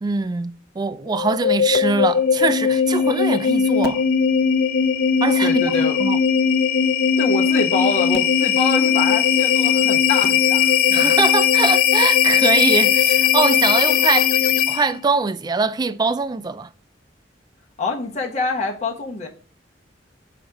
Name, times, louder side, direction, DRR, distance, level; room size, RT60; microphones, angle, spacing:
voice 1, 0.0-4.0 5.2-5.7 6.0-6.2 10.9-14.3 14.7-16.7, right 4 dB, 20° right, 0.3 m, -22 dB
sound 1, 1.1-15.0, left 7 dB, 55° left, 0.5 m, -18 dB
voice 2, 5.4-6.0 7.2-11.1 17.8-19.3, left 3 dB, 35° left, 1.1 m, -26 dB
5.0 x 4.1 x 5.8 m
head